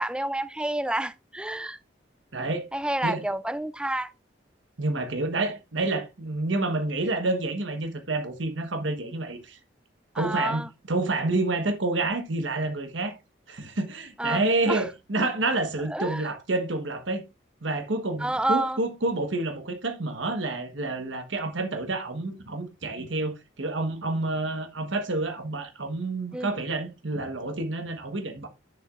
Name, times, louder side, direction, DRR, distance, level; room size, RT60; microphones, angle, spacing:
voice 1, 0.0-1.8 2.7-4.1 10.1-10.7 14.2-14.4 14.7-14.8 15.9-16.2 18.2-18.8 26.3-26.5, right 1 dB, 5° right, 0.4 m, -29 dB
voice 2, 2.3-2.7 3.0-3.2 4.8-9.6 10.1-13.1 13.5-17.2 17.6-28.5, right 2 dB, 85° right, 1.3 m, -28 dB
10.5 x 6.8 x 2.5 m
head